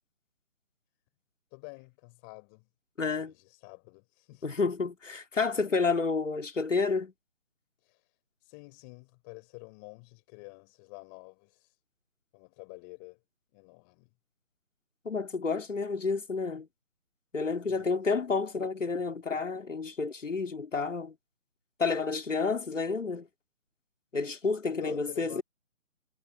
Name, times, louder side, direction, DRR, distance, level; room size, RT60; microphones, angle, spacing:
voice 1, 1.5-2.7 3.2-4.5 7.8-8.0 8.4-11.7 12.3-13.2 13.5-14.1 17.7-18.0 24.8-25.4, left 35 dB, 15° left, 3.7 m, -49 dB
voice 2, 3.0-3.3 4.4-7.1 15.0-16.7 17.3-21.1 21.8-23.3 24.1-25.4, left 4 dB, 65° left, 2.9 m, -30 dB
figure-of-eight pair, 155°, 40 cm